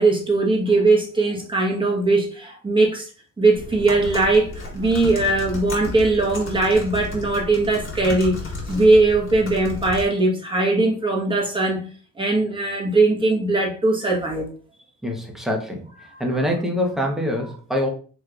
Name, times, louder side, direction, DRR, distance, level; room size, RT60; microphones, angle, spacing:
voice 1, 0.0-3.1 3.4-8.4 8.7-11.8 12.2-14.5 16.1-16.2, right 2 dB, 15° right, -2 dB, 1.3 m, -20 dB
sound 1, 3.5-10.1, left 2 dB, 40° left, 1.6 m, -33 dB
voice 2, 15.0-15.9 16.2-17.9, equal, ahead, 0 dB, 1.0 m, -24 dB
4.3 x 3.1 x 2.5 m, 0.40 s
cardioid pair, 90°, 30 cm